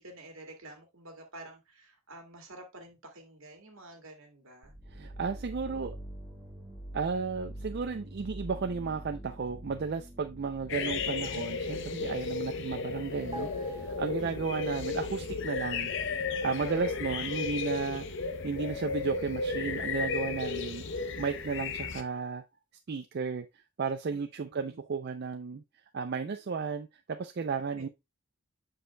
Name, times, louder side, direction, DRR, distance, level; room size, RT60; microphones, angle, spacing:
voice 1, 0.0-4.7 14.2-14.6 16.6-17.4 24.1-24.8 27.7-27.9, right 2 dB, 70° right, 2.0 m, -50 dB
sound 1, 4.6-12.3, right 1 dB, 5° right, 2.1 m, -45 dB
voice 2, 4.9-6.0 6.9-15.9 16.4-18.1 18.4-22.4 22.9-25.6 25.9-27.9, right 5 dB, 50° right, 0.4 m, -34 dB
sound 2, 10.7-22.0, left 4 dB, 60° left, 0.7 m, -34 dB
sound 3, 13.3-14.9 15.2-15.4, right 1 dB, 25° right, 0.7 m, -48 dB
7.7 x 6.3 x 2.2 m
head